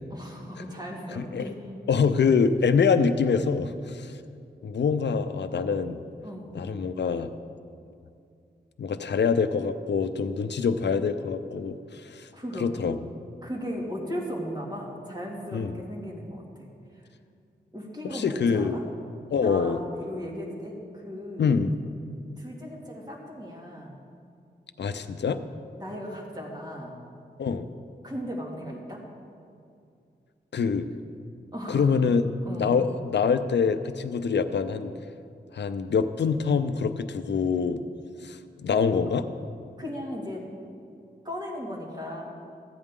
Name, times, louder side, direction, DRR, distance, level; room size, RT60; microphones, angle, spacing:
voice 1, 0.1-1.6 6.2-6.5 12.3-12.7 13.4-16.7 17.7-18.8 19.3-21.5 22.4-24.0 25.8-27.0 28.0-29.0 31.5-32.0 32.5-32.7 39.8-40.4 41.2-42.2, equal, 25° right, -3 dB, 2.3 m, -37 dB
voice 2, 1.9-4.1 4.6-6.0 6.5-7.3 8.8-12.3 12.6-13.0 15.5-15.8 18.0-18.8 19.3-19.8 21.4-21.7 24.8-25.4 27.4-27.7 30.5-30.9 31.7-32.2 32.5-34.9 35.5-37.8 38.2-39.3, left 5 dB, 80° left, 10 dB, 0.5 m, -25 dB
14.5 x 9.2 x 3.7 m, 2.4 s
wide cardioid pair, 80°, 18 cm